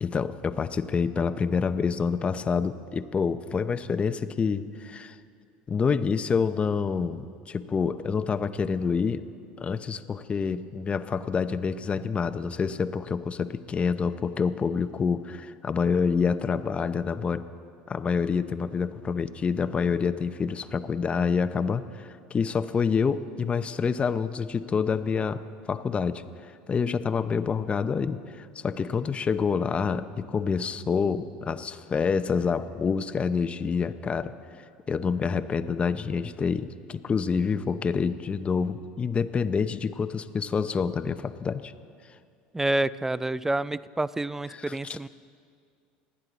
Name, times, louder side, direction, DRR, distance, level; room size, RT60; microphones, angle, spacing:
voice 1, 0.0-5.2 5.7-9.3 9.6-17.5 17.9-25.4 25.7-34.3 34.9-41.7 44.8-45.0, left 5 dB, 25° left, 11 dB, 0.7 m, -27 dB
voice 2, 42.5-45.1, right 2 dB, 10° right, 18 dB, 0.4 m, -28 dB
27.5 x 9.9 x 4.0 m, 2.3 s
supercardioid pair, 90°, 4 cm